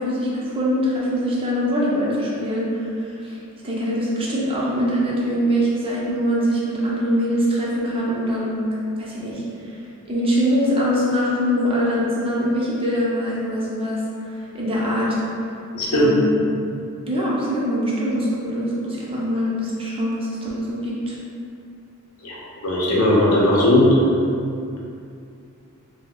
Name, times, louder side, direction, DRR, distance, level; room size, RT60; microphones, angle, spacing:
voice 1, 0.0-3.3 3.6-8.6 9.0-9.4 10.1-14.0 14.5-15.2 15.9-16.3 17.1-21.2, equal, 25° right, -6 dB, 0.5 m, -23 dB
voice 2, 15.7-16.1 22.2-22.4 22.6-23.8, left 1 dB, 80° left, -5 dB, 0.7 m, -17 dB
2.7 x 2.0 x 3.7 m, 2.5 s
head